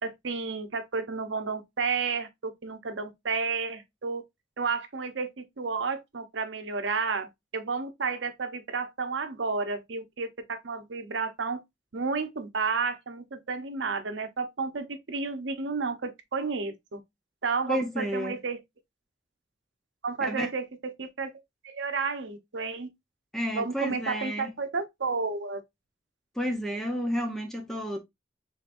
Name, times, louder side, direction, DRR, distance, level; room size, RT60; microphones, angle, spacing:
voice 1, 0.0-4.2 4.6-11.6 11.9-17.0 17.4-18.6 20.0-21.3 21.6-22.9 23.5-25.6, right 4 dB, 80° right, 0.8 m, -31 dB
voice 2, 17.7-18.4 20.2-20.5 23.3-24.5 26.3-28.0, equal, ahead, 0.7 m, -31 dB
5.0 x 3.3 x 2.5 m
head